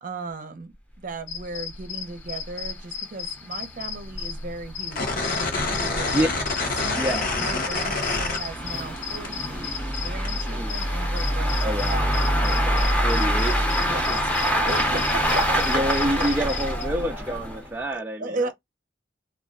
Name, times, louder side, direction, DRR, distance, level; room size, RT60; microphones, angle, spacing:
voice 1, 0.0-6.2 6.8-11.8 13.8-14.1 14.7-15.6 17.9-18.5, right 3 dB, 50° right, 0.7 m, -36 dB
sound 1, 1.3-16.8, left 8 dB, 80° left, 0.6 m, -35 dB
sound 2, 1.3-1.4 1.7-1.8 2.2-2.3 2.7-2.8 3.4-17.8, equal, 10° left, 0.7 m, -26 dB
sound 3, 4.9-9.0 9.2-10.3, left 3 dB, 55° left, 0.9 m, -27 dB
voice 2, 6.9-7.7 10.5-10.7 11.6-13.6 13.9-14.2 15.7-18.5, right 1 dB, 10° right, 0.4 m, -28 dB
2.4 x 2.2 x 3.7 m
head